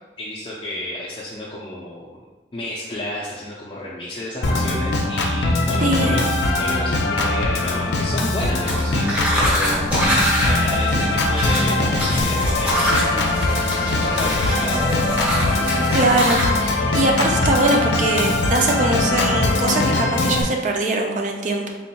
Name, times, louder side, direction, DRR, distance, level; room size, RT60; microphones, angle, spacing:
voice 1, 0.2-2.2 2.5-6.3 6.6-10.1 10.4-12.8 13.8-15.0, left 1 dB, 30° left, -7 dB, 0.4 m, -31 dB
Organ, 4.4-20.4, left 2 dB, 80° left, 0.5 m, -21 dB
voice 2, 5.8-6.2 15.9-21.7, right 2 dB, 45° right, 2 dB, 0.4 m, -22 dB
sound 1, 8.7-16.5, equal, 10° right, 0.7 m, -25 dB
4.1 x 3.3 x 2.2 m, 1.2 s
head